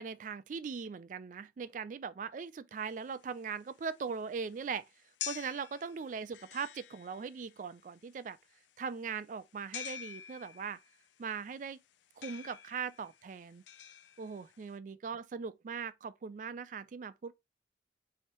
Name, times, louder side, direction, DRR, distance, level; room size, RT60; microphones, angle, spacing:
voice 1, 0.0-4.8 5.3-8.4 8.8-10.8 11.2-11.8 12.2-13.6 14.2-17.3, right 6 dB, 45° right, 0.3 m, -40 dB
sound 1, 2.8-14.8, left 11 dB, 80° left, 0.3 m, -48 dB
3.1 x 2.8 x 4.4 m
head